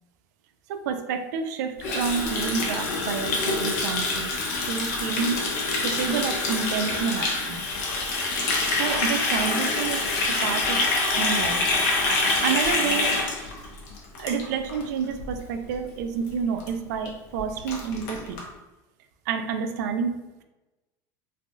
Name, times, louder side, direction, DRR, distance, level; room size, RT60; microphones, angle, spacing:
voice 1, 0.7-4.3 4.7-5.4 5.8-7.6 8.8-10.1 10.4-10.8 11.2-11.6 12.4-13.2 14.2-18.4 19.3-20.2, right 6 dB, 90° right, 7 dB, 0.4 m, -29 dB
Water tap faucet, 1.8-14.8 15.1-15.3 15.7-16.0 16.3-16.4 16.6-16.7 17.1-17.2 17.4-18.4, left 3 dB, 85° left, 0.8 m, -26 dB
3.2 x 2.2 x 2.6 m, 1.1 s
cardioid pair, 155°, 9 cm